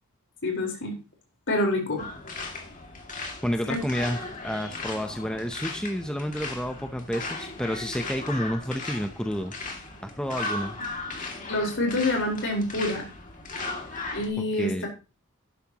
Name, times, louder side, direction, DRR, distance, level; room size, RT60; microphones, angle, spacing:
voice 1, 0.4-0.9 1.5-2.0 3.7-3.8 11.5-13.1 14.1-14.9, left 1 dB, 55° left, 1 dB, 4.3 m, -27 dB
sound 1, 2.0-14.3, left 3 dB, 35° left, 2.3 m, -37 dB
voice 2, 3.4-9.5 10.0-10.8 14.6-14.9, equal, 5° left, 6 dB, 0.7 m, -30 dB
12.0 x 11.0 x 3.0 m, 0.32 s
head